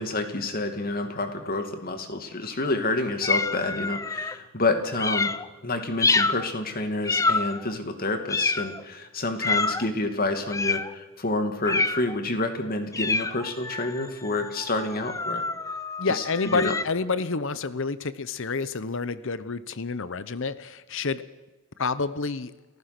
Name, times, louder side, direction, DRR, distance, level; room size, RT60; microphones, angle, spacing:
voice 1, 0.0-5.3 5.6-15.4 16.1-16.2 16.5-16.7, left 2 dB, 45° left, 6 dB, 2.5 m, -28 dB
sound 1, 3.2-4.4 5.0-5.5 6.0-6.5 7.1-7.7 8.3-8.8 9.4-9.9 10.5-10.9 11.6-12.2 12.9-16.8, left 3 dB, 15° left, 0.6 m, -27 dB
voice 2, 16.0-21.2 21.8-22.5, left 4 dB, 60° left, 15 dB, 0.9 m, -29 dB
30.0 x 15.0 x 6.1 m, 1.2 s
head